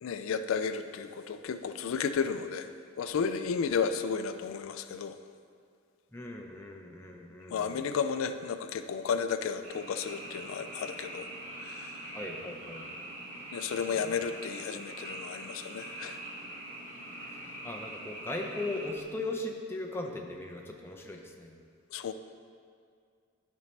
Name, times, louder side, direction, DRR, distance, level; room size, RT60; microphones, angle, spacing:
voice 1, 0.0-2.7 3.0-5.2 7.5-11.3 11.6-12.0 13.5-16.2 21.9-22.1, left 6 dB, 85° left, 9 dB, 0.3 m, -33 dB
voice 2, 6.1-7.6 12.1-12.8 13.9-14.1 17.6-21.5, left 2 dB, 10° left, 1 dB, 0.6 m, -38 dB
Frog, 9.6-19.0, right 1 dB, 40° right, 1.8 m, -43 dB
12.0 x 5.3 x 3.2 m, 2.2 s
head